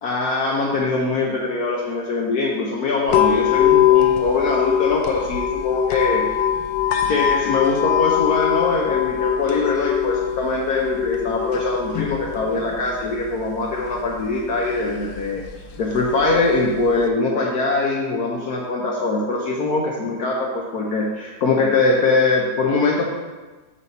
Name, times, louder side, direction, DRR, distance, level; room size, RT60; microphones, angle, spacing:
voice 1, 0.0-6.2 7.1-15.4 15.8-23.0, left 3 dB, 65° left, -2 dB, 1.2 m, -22 dB
sound 1, 3.1-17.1, left 11 dB, 90° left, 1.3 m, -23 dB
6.2 x 4.3 x 5.3 m, 1.2 s
omnidirectional pair, 1.9 m